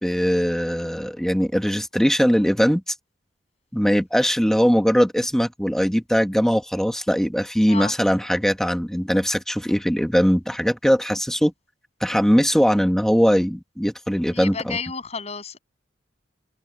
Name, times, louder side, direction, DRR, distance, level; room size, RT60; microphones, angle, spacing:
voice 1, 0.0-2.9 3.7-11.5 12.0-14.8, equal, 5° left, 1.5 m, -20 dB
voice 2, 14.3-15.6, left 5 dB, 35° left, 7.5 m, -31 dB
head